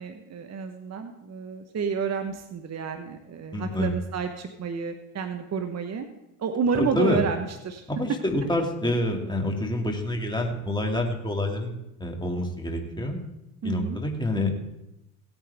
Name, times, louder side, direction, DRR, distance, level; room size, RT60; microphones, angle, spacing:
voice 1, 0.0-6.1 6.4-7.8 13.6-14.0, right 6 dB, 35° right, 6 dB, 1.1 m, -30 dB
voice 2, 3.5-3.9 6.7-7.2 8.0-13.2 13.6-14.5, left 1 dB, 10° left, 2 dB, 2.3 m, -27 dB
17.0 x 9.0 x 3.5 m, 0.90 s
supercardioid pair, 80°, 43 cm